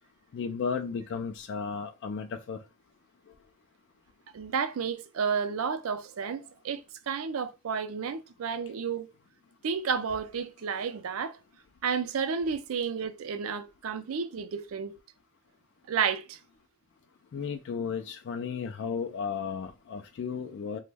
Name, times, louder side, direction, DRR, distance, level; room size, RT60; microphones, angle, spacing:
voice 1, 0.3-2.6 17.3-20.8, left 6 dB, 50° left, 0.3 m, -34 dB
voice 2, 4.3-9.1 9.6-11.4 11.8-15.0 15.9-16.4, right 6 dB, 70° right, 0.4 m, -31 dB
3.0 x 2.1 x 3.3 m
head